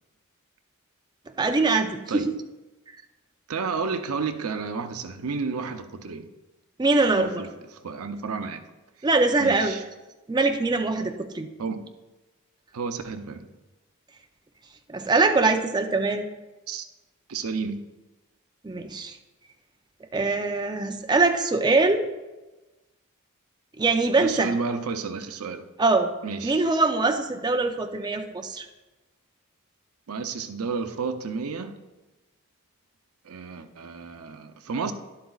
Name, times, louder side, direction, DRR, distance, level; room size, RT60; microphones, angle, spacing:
voice 1, 1.4-2.3 6.8-7.4 9.0-9.8 10.3-11.5 14.9-16.3 18.6-19.2 20.1-22.1 23.8-24.5 25.8-26.1 26.4-28.7, right 3 dB, 20° right, 0.5 m, -23 dB
voice 2, 3.5-6.3 7.1-8.6 9.0-9.1 9.4-9.8 11.6-11.8 12.7-13.5 16.7-16.9 17.3-17.8 24.2-25.7 26.2-26.6 30.1-31.8 33.2-34.9, right 5 dB, 90° right, 0.6 m, -31 dB
11.5 x 11.0 x 2.4 m
head